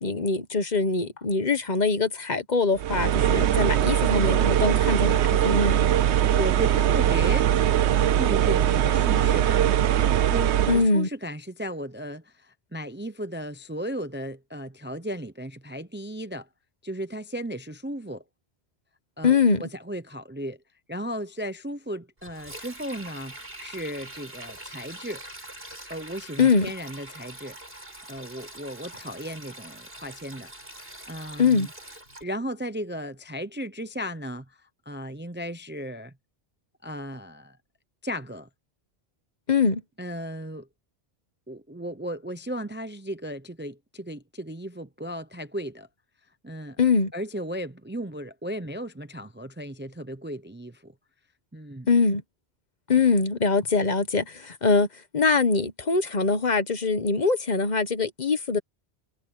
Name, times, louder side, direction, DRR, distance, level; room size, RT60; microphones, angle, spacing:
voice 1, 0.0-5.9 10.7-11.1 19.2-19.6 26.4-26.7 31.4-31.7 39.5-39.8 46.8-47.1 51.9-52.2 52.9-54.9 55.1-58.6, left 4 dB, 45° left, 1.1 m, -23 dB
sound 1, 2.8-10.9, right 11 dB, 90° right, 1.0 m, -21 dB
voice 2, 6.3-7.5 8.1-9.7 10.3-16.5 16.8-18.2 19.2-20.6 20.9-25.2 25.9-27.6 28.1-30.5 31.1-31.7 32.2-36.1 36.8-37.6 38.0-38.5 40.0-40.7 41.5-45.9 46.4-46.8 47.1-50.9 51.5-51.9, equal, 10° right, 0.6 m, -35 dB
Sink (filling or washing), 22.2-32.2, right 1 dB, 60° right, 8.0 m, -43 dB
omnidirectional pair, 1.1 m